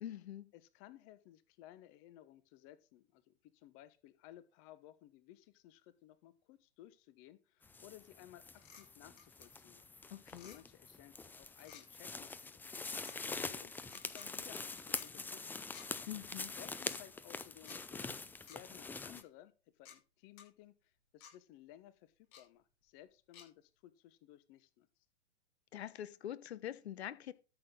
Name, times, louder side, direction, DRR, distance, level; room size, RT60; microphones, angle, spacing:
voice 1, 0.0-0.5 10.1-10.6 16.1-16.5 25.7-27.3, left 11 dB, 70° left, 1.2 m, -44 dB
voice 2, 0.5-8.4 8.8-9.8 10.5-15.7 16.4-24.9, left 13 dB, 40° left, 1.2 m, -59 dB
sound 1, 7.6-19.2, left 4 dB, 5° left, 0.5 m, -45 dB
sound 2, 8.6-8.8 9.2-9.4 10.3-10.6 11.6-11.8 12.7-13.2 13.8-14.3 15.0-15.1 15.7-15.9 16.8-16.9 17.6-17.8 18.5-18.6 19.2-19.3 19.8-20.0 20.4-20.5 21.2-21.3 22.3-22.4 23.3-23.5, left 8 dB, 55° left, 5.7 m, -55 dB
13.0 x 8.1 x 3.9 m
hypercardioid pair, 120°, 33 cm